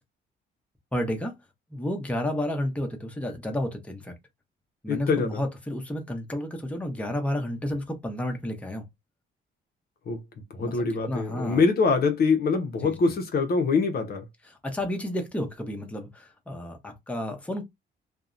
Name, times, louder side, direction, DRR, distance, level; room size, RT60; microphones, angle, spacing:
voice 1, 0.9-1.3 1.7-4.1 4.8-8.8 10.6-11.6 12.8-13.1 14.5-17.6, left 1 dB, 5° left, 0.7 m, -31 dB
voice 2, 4.9-5.4 10.1-10.2 10.5-14.3, left 4 dB, 50° left, 0.6 m, -24 dB
2.6 x 2.1 x 2.4 m
cardioid pair, 90°, 20 cm